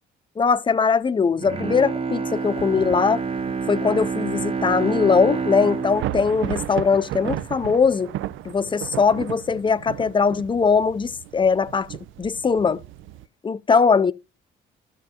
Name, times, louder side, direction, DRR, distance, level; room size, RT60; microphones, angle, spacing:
voice 1, 0.4-3.2 3.7-8.1 8.4-12.8 13.4-14.1, left 5 dB, 25° left, 0.4 m, -21 dB
Bowed string instrument, 1.3-7.6 8.0-8.1, right 5 dB, 30° right, 0.6 m, -28 dB
Thunder / Rain, 2.4-13.3, right 14 dB, 85° right, 0.4 m, -35 dB
13.5 x 6.6 x 2.8 m
cardioid pair, 90°, 20 cm